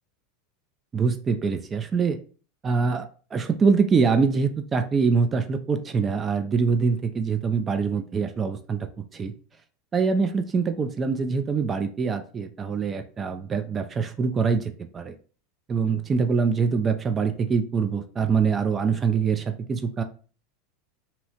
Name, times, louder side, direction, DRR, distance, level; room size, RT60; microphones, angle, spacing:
voice 1, 0.9-2.2 2.6-8.9 9.1-9.3 9.9-15.1 15.7-20.0, right 5 dB, 25° right, 7 dB, 0.3 m, -24 dB
2.7 x 2.0 x 2.8 m, 0.40 s
hypercardioid pair, 105°, 0 cm